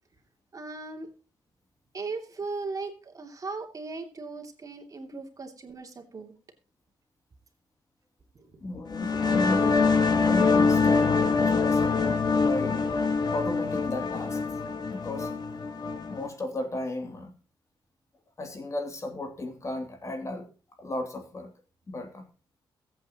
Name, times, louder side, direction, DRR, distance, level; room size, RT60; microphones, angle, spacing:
voice 1, 0.5-1.1 1.9-6.3 8.3-8.6, right 3 dB, 40° right, 4 dB, 2.8 m, -38 dB
voice 2, 8.6-9.8 10.2-12.9 13.3-14.4 14.9-15.3 16.1-17.3 18.4-20.5 20.8-21.5 21.9-22.3, left 2 dB, 35° left, 5 dB, 2.9 m, -34 dB
sound 1, 8.9-16.3, left 4 dB, 50° left, 2.3 m, -24 dB
22.0 x 8.4 x 3.0 m, 0.35 s
cardioid pair, 90°, 9 cm